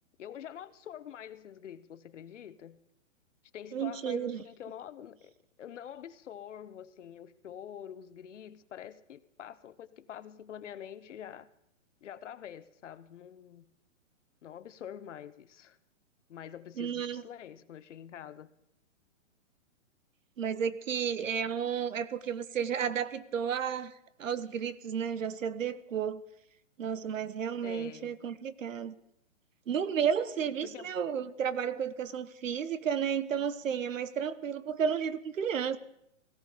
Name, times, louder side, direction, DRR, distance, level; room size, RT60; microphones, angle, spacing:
voice 1, 0.2-2.8 3.5-5.3 5.6-11.5 12.0-13.7 14.4-15.8 16.3-18.5 27.6-28.2 30.6-30.9, left 9 dB, 65° left, 1.1 m, -46 dB
voice 2, 3.7-4.4 16.8-17.2 20.4-23.9 24.2-26.2 26.8-28.9 29.7-35.8, right 7 dB, 80° right, 1.3 m, -32 dB
18.0 x 16.0 x 5.1 m
hypercardioid pair, 155°, 38 cm